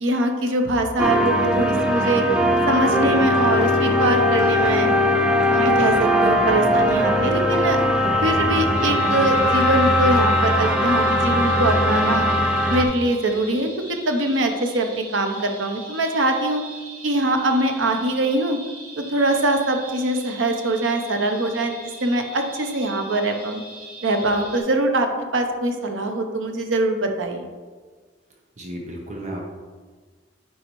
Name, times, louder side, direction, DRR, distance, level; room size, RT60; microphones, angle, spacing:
voice 1, 0.0-2.3 2.7-4.9 5.5-7.8 8.2-12.3 12.7-16.6 17.0-18.6 19.0-21.7 22.0-23.6 24.0-25.1 25.3-27.5, right 1 dB, 85° right, 5 dB, 0.8 m, -23 dB
sound 1, 1.0-12.8, left 1 dB, 5° right, 0.4 m, -19 dB
sound 2, 8.7-24.6, right 1 dB, 55° right, 1.7 m, -41 dB
voice 2, 28.6-29.4, right 1 dB, 40° right, 0 dB, 0.8 m, -33 dB
9.2 x 4.2 x 3.1 m, 1.5 s
head